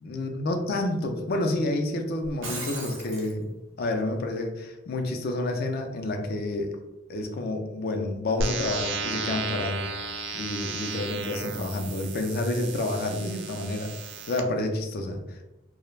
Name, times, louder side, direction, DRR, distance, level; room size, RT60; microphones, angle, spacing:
voice 1, 0.0-6.7 7.1-9.9 10.3-13.9 14.3-15.4, left 2 dB, 50° left, 5 dB, 0.4 m, -29 dB
Shatter, 2.2-3.3, right 3 dB, 80° right, 0.8 m, -36 dB
sound 1, 8.4-14.4, right 4 dB, 60° right, 0.3 m, -34 dB
2.3 x 2.1 x 3.1 m, 0.95 s
head